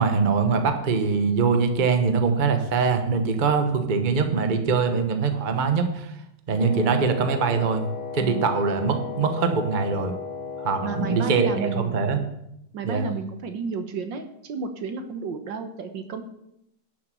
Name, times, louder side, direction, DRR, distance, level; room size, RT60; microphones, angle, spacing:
voice 1, 0.0-6.1 6.5-7.9 8.1-10.1 10.6-12.2 12.8-13.1, right 5 dB, 35° right, 6 dB, 0.8 m, -23 dB
Wind instrument woodwind instrument, 6.5-11.9, left 5 dB, 30° left, 0.8 m, -35 dB
voice 2, 8.2-8.6 10.8-12.1 12.7-16.2, right 5 dB, 65° right, 7 dB, 1.6 m, -32 dB
12.0 x 6.8 x 6.9 m, 0.81 s
omnidirectional pair, 2.4 m